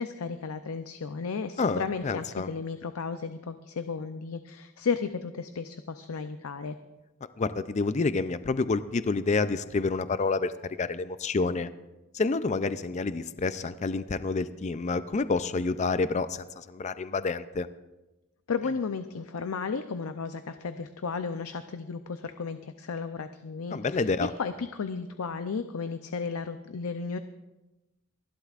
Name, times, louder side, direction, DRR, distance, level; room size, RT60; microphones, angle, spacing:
voice 1, 0.0-6.8 18.5-24.1 24.4-27.2, left 5 dB, 75° left, 9 dB, 0.6 m, -34 dB
voice 2, 1.6-2.5 7.4-11.7 12.1-17.7 23.7-24.3, left 3 dB, 30° left, 12 dB, 0.4 m, -28 dB
27.5 x 11.5 x 2.5 m, 1.0 s
head